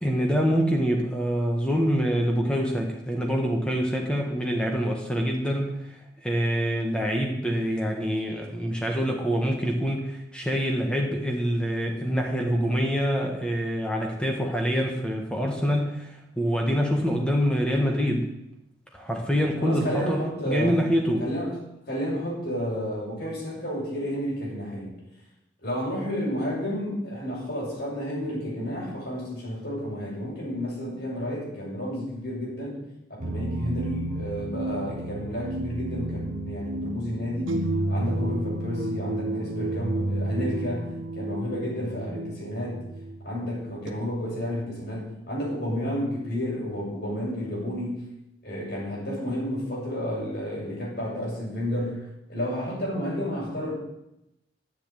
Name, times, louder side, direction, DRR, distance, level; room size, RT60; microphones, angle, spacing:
voice 1, 0.0-18.3 18.9-21.2, equal, 5° left, 1 dB, 1.7 m, -25 dB
voice 2, 19.6-20.9 21.2-21.6 21.9-24.9 25.6-32.8 33.1-42.8 43.2-48.1 48.4-53.7, equal, 55° left, -5 dB, 6.5 m, -31 dB
sound 1, 33.2-43.9, right 2 dB, 90° right, 1.6 m, -31 dB
10.5 x 7.8 x 9.1 m, 0.86 s
head